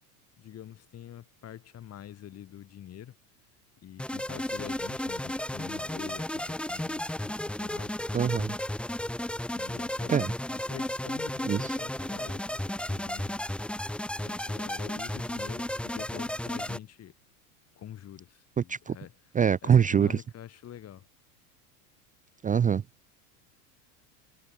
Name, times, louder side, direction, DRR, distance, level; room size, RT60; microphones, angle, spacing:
voice 1, 0.4-3.2 3.8-8.4 9.5-13.4 14.2-17.1 17.8-19.1 19.6-21.1, left 11 dB, 35° left, 2.0 m, -46 dB
sound 1, 4.0-16.8, left 1 dB, ahead, 1.0 m, -33 dB
voice 2, 8.1-8.6 10.1-10.3 11.5-11.8 18.6-19.0 19.3-20.2 22.4-22.8, right 7 dB, 20° right, 0.6 m, -24 dB
hypercardioid pair, 100°, 45 cm